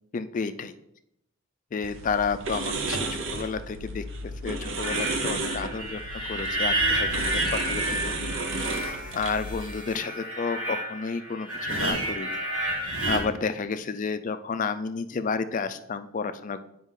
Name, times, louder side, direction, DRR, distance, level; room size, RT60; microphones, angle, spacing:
voice 1, 0.1-0.7 1.7-8.3 9.1-12.4 13.1-16.6, left 5 dB, 35° left, 11 dB, 0.4 m, -31 dB
sound 1, 1.8-9.5, right 2 dB, 60° right, 0.7 m, -33 dB
sound 2, 4.8-13.2, right 1 dB, 85° right, 1.9 m, -30 dB
8.0 x 5.1 x 3.7 m, 0.79 s
head